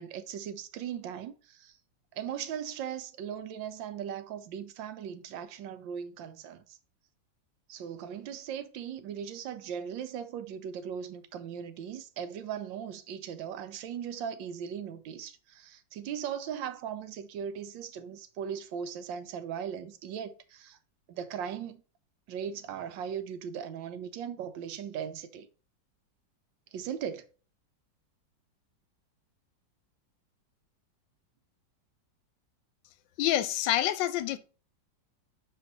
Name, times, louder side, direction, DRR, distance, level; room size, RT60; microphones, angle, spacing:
voice 1, 0.0-1.7 2.2-6.8 7.7-20.8 21.1-21.8 22.3-25.5 26.7-27.2, right 8 dB, 85° right, 1.4 m, -38 dB
voice 2, 33.2-34.4, left 13 dB, 85° left, 1.3 m, -27 dB
6.7 x 4.4 x 4.0 m
omnidirectional pair, 2.0 m